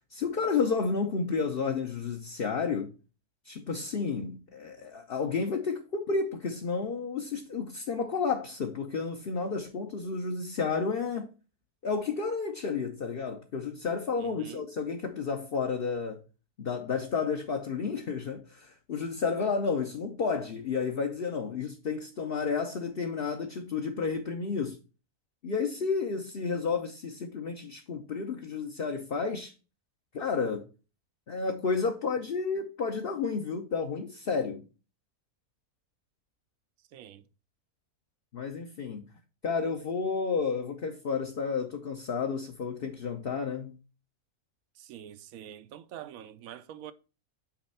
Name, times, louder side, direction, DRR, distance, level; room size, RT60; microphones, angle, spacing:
voice 1, 0.1-2.9 3.4-11.3 11.8-16.2 16.6-24.8 25.4-29.5 30.1-30.6 31.3-34.6 38.3-39.0 39.4-43.8, left 5 dB, 45° left, 0.9 m, -31 dB
voice 2, 14.2-14.6 36.9-37.3 44.8-46.9, right 10 dB, 70° right, 1.1 m, -45 dB
8.7 x 3.3 x 5.6 m
omnidirectional pair, 1.6 m